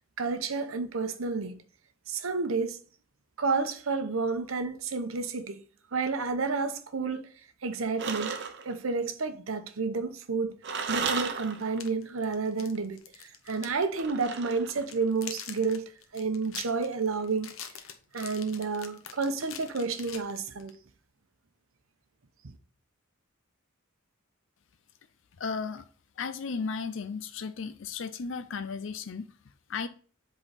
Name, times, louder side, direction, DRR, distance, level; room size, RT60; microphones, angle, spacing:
voice 1, 0.2-1.6 2.1-2.8 3.4-5.6 5.9-7.3 7.6-8.3 8.6-10.6 10.9-17.5 18.1-20.7 22.4-22.5, right 4 dB, 90° right, 0.8 m, -30 dB
sound 1, 8.0-8.7 10.6-11.9 13.9-15.0, right 5 dB, 60° right, 0.8 m, -34 dB
sound 2, 11.6-13.8 14.1-14.3 14.7-20.8, left 8 dB, 80° left, 0.9 m, -45 dB
voice 2, 25.4-25.9 26.2-29.9, left 5 dB, 65° left, 0.5 m, -35 dB
7.9 x 3.9 x 4.1 m
head